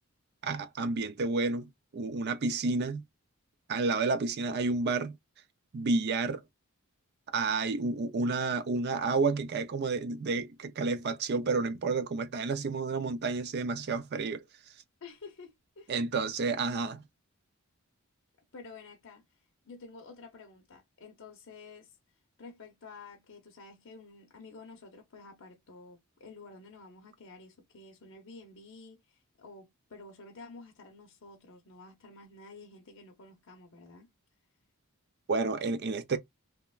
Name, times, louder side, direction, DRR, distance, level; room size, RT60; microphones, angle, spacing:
voice 1, 0.4-1.7 1.9-3.0 3.7-5.2 5.7-6.4 7.3-14.4 15.9-17.0 35.3-36.2, right 3 dB, 45° right, 0.4 m, -30 dB
voice 2, 15.0-15.9 18.5-19.2 19.6-22.0 22.4-34.1, left 3 dB, 60° left, 0.7 m, -50 dB
3.0 x 2.1 x 2.3 m
head